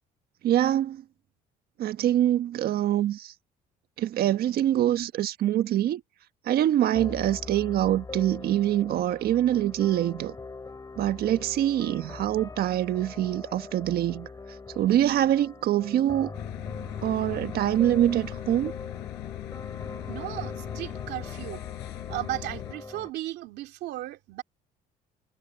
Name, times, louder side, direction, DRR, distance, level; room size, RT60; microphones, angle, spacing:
voice 1, 0.4-1.0 1.8-3.3 4.0-6.0 6.4-10.3 11.0-14.3 14.7-16.3 17.0-18.7, right 12 dB, 65° right, 1.4 m, -24 dB
sound 1, 6.9-23.1, left 3 dB, 20° left, 4.3 m, -41 dB
sound 2, 16.3-22.7, left 19 dB, 90° left, 4.3 m, -39 dB
voice 2, 20.1-21.6 22.1-24.4, right 16 dB, 85° right, 2.5 m, -35 dB
cardioid pair, 110°, 17 cm